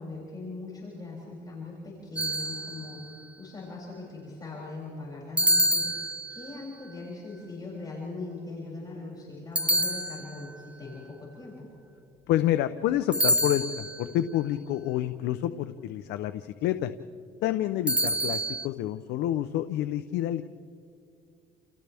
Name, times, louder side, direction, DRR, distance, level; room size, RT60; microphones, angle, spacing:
voice 1, 0.0-11.7, left 3 dB, 25° left, -5 dB, 7.0 m, -40 dB
sound 1, 2.2-3.1 5.4-6.6 9.6-10.6 13.1-14.1 17.9-18.7, equal, 5° right, 1.2 m, -27 dB
voice 2, 12.3-16.9 17.4-20.4, left 12 dB, 85° left, 9 dB, 0.7 m, -28 dB
30.0 x 29.5 x 3.5 m, 2.6 s
cardioid pair, 110°, 17 cm